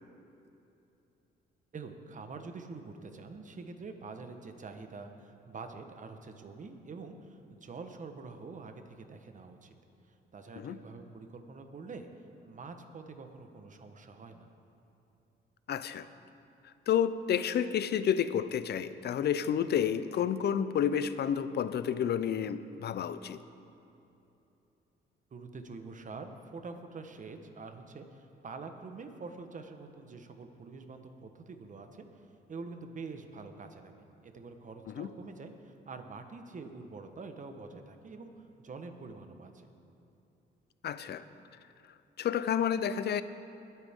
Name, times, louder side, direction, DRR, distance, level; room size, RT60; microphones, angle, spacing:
voice 1, 1.7-9.7 10.1-12.1 12.4-14.5 25.3-38.3 38.6-39.8, right 4 dB, 40° right, 6 dB, 1.2 m, -46 dB
voice 2, 15.7-16.1 16.9-23.4 35.0-35.1 40.8-41.2 42.2-43.2, left 8 dB, 55° left, 13 dB, 0.6 m, -30 dB
21.0 x 9.2 x 3.7 m, 2.9 s
cardioid pair, 90°, 20 cm